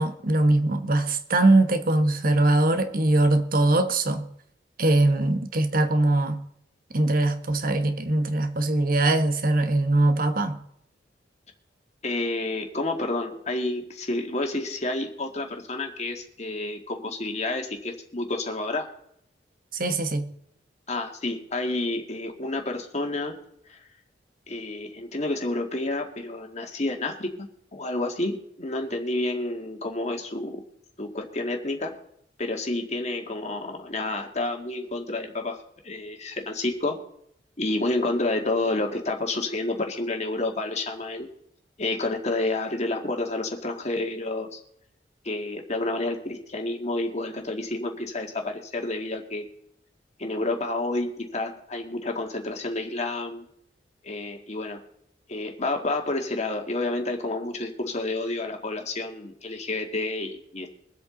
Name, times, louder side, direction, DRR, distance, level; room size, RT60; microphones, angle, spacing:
voice 1, 0.0-4.3 4.8-6.4 6.9-10.6 19.7-20.3, right 2 dB, 50° right, 1.3 m, -22 dB
voice 2, 12.0-18.9 20.9-23.4 23.7-23.8 24.5-30.6 31.0-32.0 32.4-35.6 35.8-37.0 37.6-41.3 41.8-44.6 45.2-49.5 50.2-53.4 54.0-54.8 55.3-60.7, left 2 dB, 40° left, 1.9 m, -29 dB
23.5 x 8.2 x 3.9 m
head